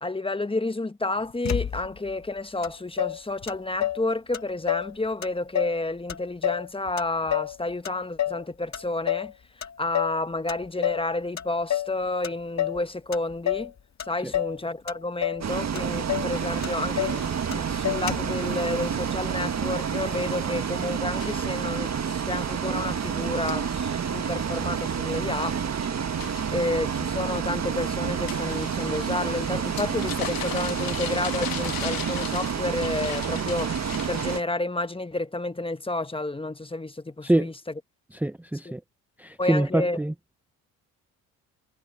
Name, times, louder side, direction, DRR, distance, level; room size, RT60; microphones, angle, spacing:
voice 1, 0.0-9.3 9.8-13.7 14.0-25.6 26.5-37.5 39.4-40.0, left 2 dB, 15° left, 1.3 m, -30 dB
Motor vehicle (road), 1.4-2.1 2.6-2.7 3.0-4.1 4.3-4.9 5.2-5.8 6.1-7.6 7.8-8.4 8.7-9.3 9.6-10.2 10.5-11.1 11.4-12.0 12.2-12.8 13.1-13.7 14.0-14.6 14.9-15.5 15.8-15.9 16.1-16.3 16.6-17.2 17.5-17.6 17.8-18.4, left 11 dB, 40° left, 1.8 m, -29 dB
Bus, 15.4-34.4, right 7 dB, 40° right, 1.6 m, -29 dB
sound 1, 16.3-34.4, left 12 dB, 55° left, 1.2 m, -41 dB
voice 2, 38.1-38.8 39.2-40.1, right 1 dB, 5° right, 0.8 m, -25 dB
hypercardioid pair, 55°, 41 cm